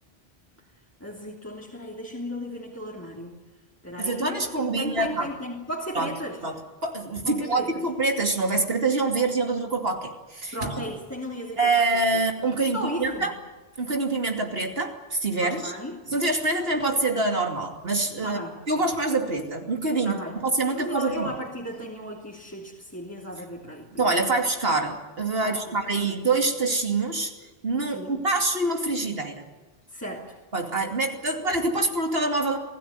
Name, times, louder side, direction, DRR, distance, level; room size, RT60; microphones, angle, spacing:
voice 1, 1.0-3.3 3.8-6.4 7.2-7.8 10.5-11.8 12.1-12.2 12.7-13.3 15.4-16.0 18.2-18.6 20.0-20.3 20.7-24.2 25.4-26.2 27.9-28.3 29.9-30.4, equal, 15° left, -2 dB, 3.3 m, -35 dB
voice 2, 4.0-5.3 5.9-6.1 6.4-10.8 11.6-13.3 13.8-15.7 16.1-18.4 18.7-21.3 24.0-27.3 27.6-29.4 30.5-32.6, right 3 dB, 65° right, 3 dB, 3.0 m, -25 dB
27.0 x 18.0 x 9.5 m, 1.2 s
omnidirectional pair, 1.1 m